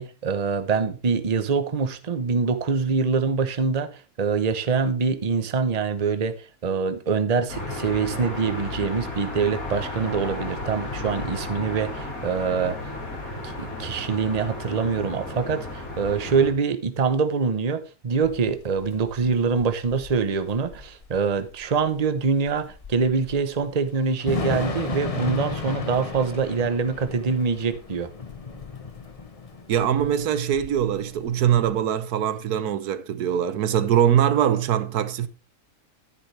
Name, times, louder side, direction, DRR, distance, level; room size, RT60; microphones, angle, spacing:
voice 1, 0.0-12.8 13.4-28.1, right 5 dB, 30° right, 0.9 m, -24 dB
sound 1, 7.5-16.5, left 2 dB, 65° left, 4.8 m, -33 dB
Thunder / Rain, 18.2-31.7, left 4 dB, 25° left, 1.0 m, -35 dB
voice 2, 29.7-35.3, right 9 dB, 80° right, 1.4 m, -22 dB
11.0 x 10.0 x 3.3 m
omnidirectional pair, 1.6 m